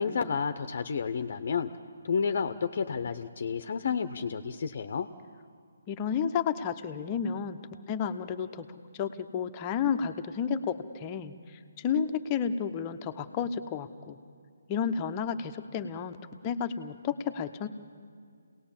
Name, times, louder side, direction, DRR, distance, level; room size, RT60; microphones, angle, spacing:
voice 1, 0.0-1.7 2.0-5.1, left 6 dB, 55° left, 9 dB, 0.8 m, -30 dB
voice 2, 5.9-7.6 7.9-8.7 8.9-14.2 14.7-16.2 16.4-17.7, left 7 dB, 25° left, 7 dB, 0.9 m, -31 dB
28.0 x 18.5 x 7.3 m, 2.2 s
figure-of-eight pair, 155°, 0 cm